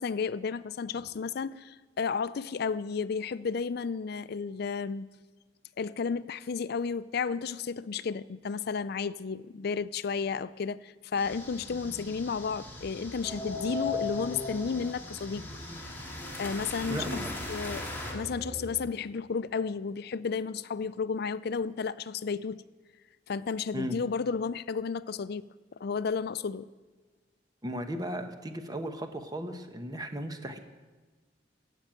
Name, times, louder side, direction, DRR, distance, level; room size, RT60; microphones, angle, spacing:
voice 1, 0.0-5.1 5.8-15.5 16.4-17.2 17.5-17.8 18.1-22.6 23.3-25.5 25.8-26.7, left 5 dB, 60° left, 16 dB, 0.4 m, -32 dB
sound 1, 11.2-18.1, left 1 dB, 10° left, 2.2 m, -42 dB
sound 2, 13.2-18.7, left 3 dB, 30° left, 4.2 m, -39 dB
voice 2, 16.9-17.3 23.7-24.0 27.6-30.6, equal, 20° right, 7 dB, 1.0 m, -36 dB
15.0 x 5.4 x 9.0 m, 1.4 s
head